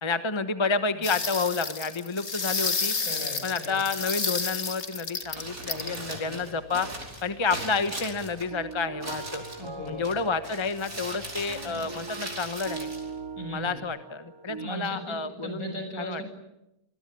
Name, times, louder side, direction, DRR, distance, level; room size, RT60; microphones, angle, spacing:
voice 1, 0.0-2.9 3.4-6.9 7.2-9.4 9.9-12.9 13.5-16.2, left 4 dB, 20° left, 10 dB, 1.1 m, -30 dB
sound 1, 1.0-6.0 7.8-8.3, left 4 dB, 50° left, 2.1 m, -31 dB
voice 2, 3.1-3.8 6.1-6.4 9.6-10.0 11.6-11.8 13.4-13.8 14.6-16.2, equal, 70° left, 5 dB, 7.0 m, -38 dB
Crumpling crinkling, 5.2-13.8, right 1 dB, 65° right, 5.5 m, -40 dB
sound 2, 7.5-14.7, right 3 dB, 20° right, 1.0 m, -41 dB
26.0 x 21.5 x 8.7 m, 0.88 s
omnidirectional pair, 1.6 m